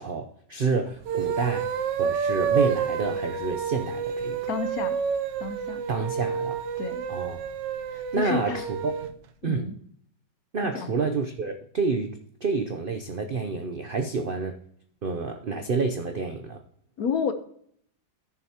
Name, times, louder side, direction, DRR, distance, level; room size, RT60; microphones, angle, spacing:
voice 1, 0.0-1.7 2.0-4.4 5.9-6.6 7.1-7.4 8.1-8.9 9.4-9.7 10.5-14.5 15.0-16.6, right 4 dB, 65° right, 5 dB, 0.5 m, -29 dB
sound 1, 1.0-9.1, right 6 dB, 90° right, 1.4 m, -29 dB
voice 2, 4.5-5.0 5.4-5.8 6.8-7.1 7.9-8.6 9.5-9.8 10.7-10.9 17.0-17.3, left 6 dB, 65° left, 9 dB, 1.2 m, -30 dB
14.5 x 6.3 x 2.9 m, 0.66 s
omnidirectional pair, 1.8 m